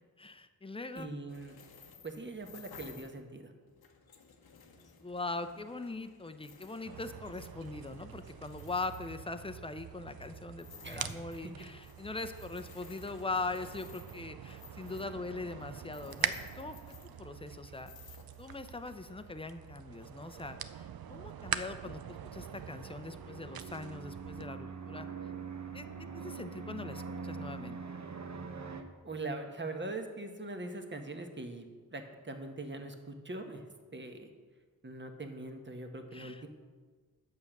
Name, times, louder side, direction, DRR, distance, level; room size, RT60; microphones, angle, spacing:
voice 1, 0.2-1.1 5.0-25.1 25.7-25.9 26.1-27.8 36.1-36.5, left 3 dB, 15° left, 9 dB, 0.6 m, -41 dB
voice 2, 0.9-1.5 2.0-3.5 6.8-7.0 10.8-11.5 29.0-31.7 31.9-33.6 33.9-34.3 34.8-36.5, right 2 dB, 30° right, 5 dB, 1.2 m, -42 dB
sound 1, 1.3-3.2 3.6-9.7 10.5-17.5 17.7-18.8, left 5 dB, 90° left, 0.9 m, -56 dB
sound 2, 6.8-24.5, right 9 dB, 75° right, 0.5 m, -44 dB
sound 3, 21.5-28.8, right 5 dB, 50° right, 0.9 m, -44 dB
8.2 x 6.7 x 6.0 m, 1.5 s
cardioid pair, 60°, 36 cm